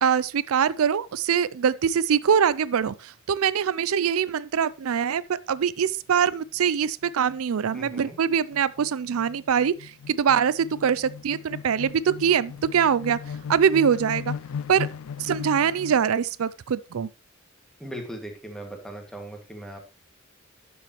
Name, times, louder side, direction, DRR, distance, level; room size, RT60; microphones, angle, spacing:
voice 1, 0.0-5.2 5.5-13.2 13.5-14.3 14.7-14.9 15.2-17.1, right 7 dB, 90° right, 0.4 m, -23 dB
sound 1, 5.6-5.9 6.2-6.3 6.6-16.3, left 6 dB, 75° left, 0.3 m, -38 dB
voice 2, 7.7-8.2 17.8-19.8, right 1 dB, 5° left, 2.1 m, -38 dB
12.0 x 7.2 x 3.1 m
head